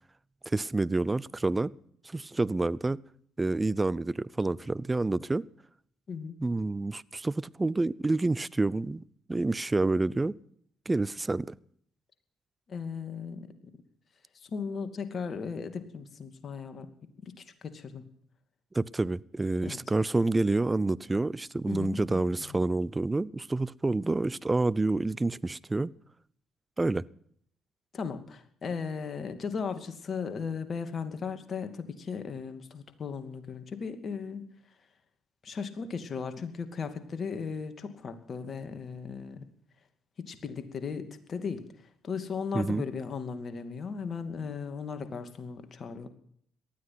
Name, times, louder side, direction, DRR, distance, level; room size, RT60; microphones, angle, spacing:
voice 1, 0.5-1.7 2.0-3.0 3.4-5.4 6.4-9.0 9.3-10.4 10.9-11.5 18.7-25.9 26.8-27.1 42.5-42.8, right 2 dB, 20° right, 0.7 m, -28 dB
voice 2, 6.1-6.4 12.7-13.5 14.3-16.9 17.4-18.0 19.6-19.8 21.7-22.6 27.9-34.4 35.4-39.4 40.2-41.6 42.0-46.1, left 5 dB, 50° left, 2.5 m, -37 dB
19.0 x 13.0 x 6.0 m
hypercardioid pair, 50°, 0 cm